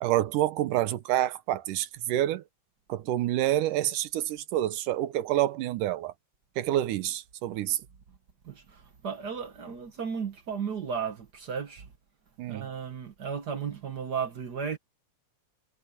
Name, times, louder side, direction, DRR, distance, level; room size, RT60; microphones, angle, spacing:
voice 1, 0.0-2.4 2.9-6.1 6.6-7.8 12.4-12.7, right 13 dB, 85° right, 2.5 m, -28 dB
voice 2, 8.4-11.9 12.5-14.8, right 6 dB, 60° right, 1.0 m, -34 dB
omnidirectional pair, 3.6 m